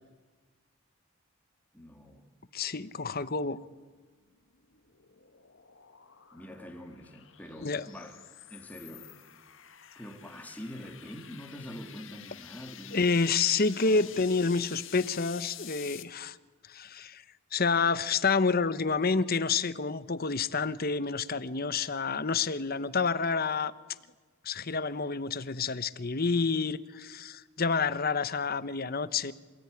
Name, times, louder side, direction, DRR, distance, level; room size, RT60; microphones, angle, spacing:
voice 1, 1.7-2.2 6.3-8.2 8.5-9.1 10.0-13.2 13.8-14.0, equal, 10° left, 2.9 m, -45 dB
voice 2, 2.5-3.6 7.6-7.9 12.9-16.4 16.7-17.2 17.5-23.7 24.4-29.3, left 4 dB, 45° left, 1.0 m, -28 dB
sound 1, 4.3-16.0, left 11 dB, 65° left, 1.7 m, -49 dB
27.5 x 17.5 x 9.8 m
head